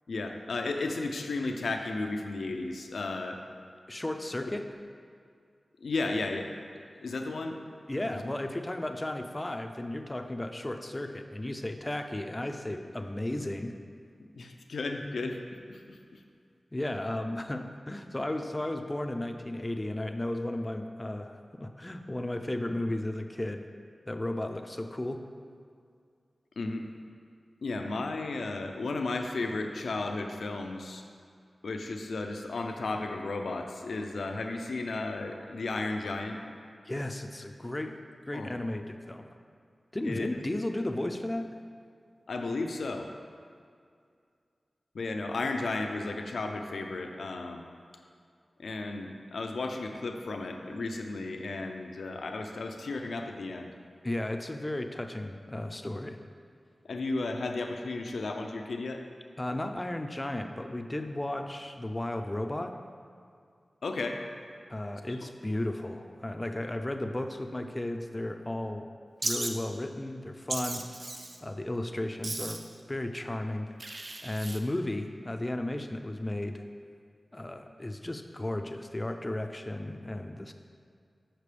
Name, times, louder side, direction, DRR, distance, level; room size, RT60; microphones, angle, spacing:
voice 1, 0.1-3.4 5.8-6.5 7.0-7.6 8.0-8.2 14.2-16.2 26.6-26.9 27.6-31.0 31.6-36.4 38.3-38.5 40.0-40.3 42.3-43.1 44.9-47.6 48.6-53.7 56.9-59.0 63.8-64.2, left 3 dB, 90° left, 4 dB, 0.5 m, -34 dB
voice 2, 3.9-4.7 7.9-13.7 16.7-23.6 24.1-25.2 36.9-38.0 38.3-39.3 39.9-41.5 54.0-56.2 59.4-62.7 64.7-68.9 69.2-70.8 71.4-72.6 72.9-73.7 74.2-76.7 77.3-80.5, left 1 dB, 25° left, 6 dB, 0.5 m, -34 dB
Wild animals, 69.2-69.5 70.5-71.4 72.2-72.7 73.8-74.6, right 2 dB, 50° right, 0.5 m, -35 dB
6.8 x 5.8 x 3.3 m, 2.2 s
wide cardioid pair, 55°, 0 cm